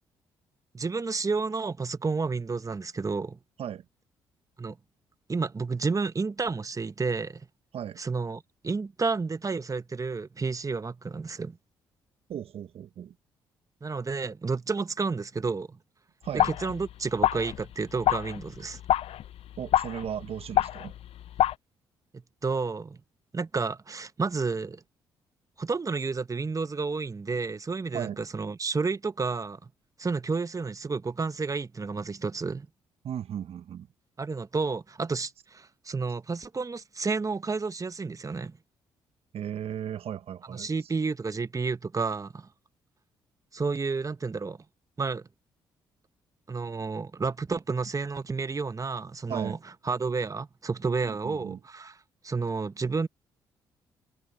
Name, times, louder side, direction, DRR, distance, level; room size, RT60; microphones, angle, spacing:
voice 1, 0.7-3.4 4.6-4.8 5.3-7.4 8.0-11.6 13.8-15.8 16.4-18.8 22.4-23.0 23.3-24.8 25.6-29.7 30.0-32.7 34.2-38.5 40.5-42.5 43.5-44.6 45.0-45.2 46.5-49.6 49.8-52.0 52.2-53.1, right 4 dB, 30° right, 1.4 m, -31 dB
voice 2, 12.3-13.1 16.2-16.5 19.6-20.9 27.9-28.2 33.0-33.9 39.3-40.7 49.3-49.6 51.0-51.6, right 9 dB, 60° right, 1.3 m, -36 dB
sound 1, 16.4-21.5, left 12 dB, 60° left, 0.6 m, -28 dB
hypercardioid pair, 45°, 11 cm